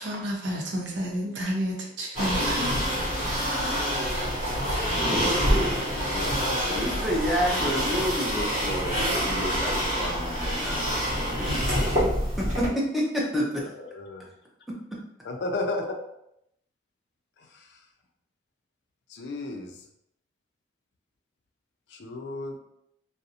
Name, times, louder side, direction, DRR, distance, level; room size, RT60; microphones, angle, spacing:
voice 1, 0.0-2.7, equal, 90° right, -1 dB, 0.6 m, -30 dB
sound 1, 2.1-12.7, equal, 40° right, 1.0 m, -26 dB
voice 2, 6.0-7.1 13.7-14.3 15.3-16.0 19.1-19.7 21.9-22.6, left 2 dB, 75° left, 3 dB, 0.4 m, -34 dB
voice 3, 6.6-8.9 9.2-11.7 12.4-13.6, equal, ahead, -4 dB, 0.5 m, -29 dB
2.4 x 2.0 x 2.7 m, 0.78 s
head